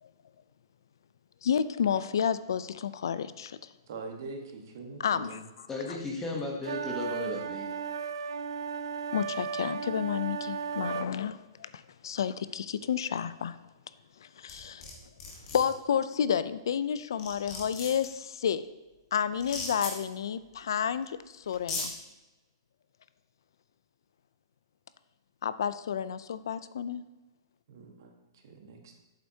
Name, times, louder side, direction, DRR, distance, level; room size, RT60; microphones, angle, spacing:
voice 1, 1.4-3.6 5.0-6.0 9.1-13.6 14.2-14.9 15.5-18.6 19.1-21.9 25.4-27.0, left 8 dB, 65° left, 14 dB, 0.4 m, -31 dB
voice 2, 3.9-5.4 27.7-28.9, right 3 dB, 50° right, 3 dB, 1.4 m, -43 dB
voice 3, 5.7-7.7, left 3 dB, 10° left, -1 dB, 1.0 m, -35 dB
sound 1, 6.6-11.1, right 6 dB, 75° right, 0.5 m, -35 dB
sound 2, 14.5-14.9 15.2-15.6 16.8-16.9 17.2-18.1 19.4-19.9 21.0-21.1 21.5-21.9, left 4 dB, 25° left, 1.3 m, -36 dB
7.9 x 7.8 x 2.8 m, 1.1 s
hypercardioid pair, 175°, 2 cm